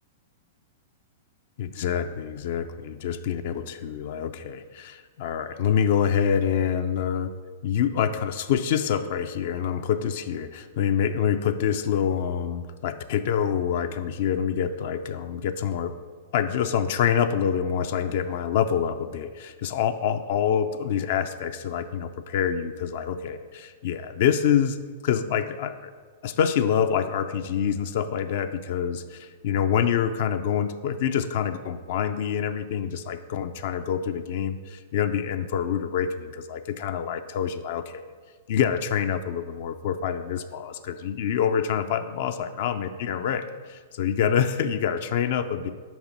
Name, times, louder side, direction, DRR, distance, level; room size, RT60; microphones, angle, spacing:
voice 1, 1.6-7.3 7.6-15.9 16.3-24.8 25.0-25.9 26.2-38.1 38.5-45.7, left 8 dB, 60° left, 9 dB, 0.3 m, -26 dB
5.1 x 4.1 x 5.9 m, 1.5 s
hypercardioid pair, 115°, 0 cm